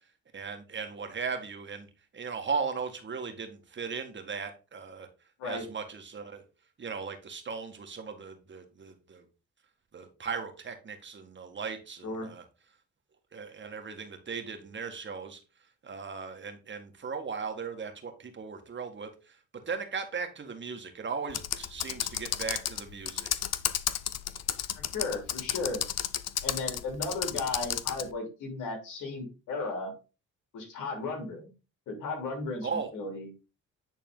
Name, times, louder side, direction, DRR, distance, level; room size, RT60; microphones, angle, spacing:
voice 1, 0.3-1.9 2.1-5.1 5.4-6.4 6.8-9.2 9.9-12.4 13.3-15.4 15.8-19.4 19.7-23.3 32.6-32.9, right 5 dB, 40° right, 5 dB, 1.8 m, -37 dB
Computer keyboard, 21.3-28.1, left 11 dB, 55° left, 0.6 m, -32 dB
voice 2, 24.9-25.8 26.4-29.9 30.5-31.5 31.9-33.3, left 3 dB, 85° left, 2 dB, 3.2 m, -35 dB
9.4 x 4.1 x 3.9 m, 0.31 s
cardioid pair, 90°, 30 cm